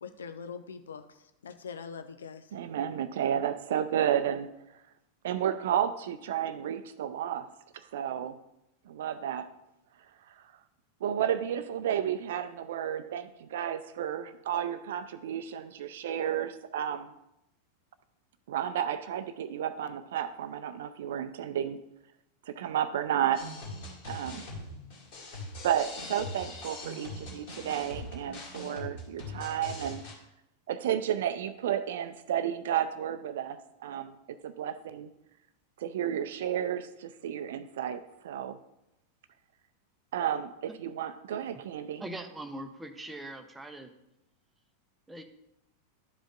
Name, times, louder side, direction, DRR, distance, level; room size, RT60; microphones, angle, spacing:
voice 1, 0.0-2.5, left 6 dB, 70° left, 9 dB, 0.6 m, -43 dB
voice 2, 2.5-4.5 5.2-8.4 8.9-9.5 10.3-10.4 11.0-17.2 18.5-21.8 22.5-23.5 24.1-24.5 25.6-30.0 30.7-34.2 34.4-35.1 35.8-38.6 40.1-42.0, right 10 dB, 60° right, 13 dB, 0.5 m, -32 dB
sound 1, 23.3-30.1, left 2 dB, 50° left, 2.5 m, -42 dB
voice 3, 42.0-43.9 45.1-45.2, right 1 dB, 10° right, 6 dB, 0.7 m, -41 dB
12.0 x 5.1 x 2.5 m, 0.86 s
figure-of-eight pair, 90°, 0 cm